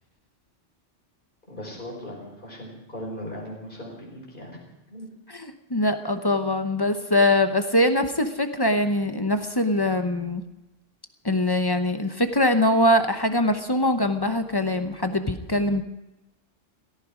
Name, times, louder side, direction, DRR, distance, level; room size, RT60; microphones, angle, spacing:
voice 1, 1.5-4.6 4.9-5.1, equal, 45° left, -3 dB, 5.5 m, -38 dB
voice 2, 5.3-10.4 11.2-15.8, left 1 dB, 20° left, 8 dB, 0.9 m, -23 dB
17.0 x 14.0 x 5.1 m, 0.95 s
omnidirectional pair, 1.2 m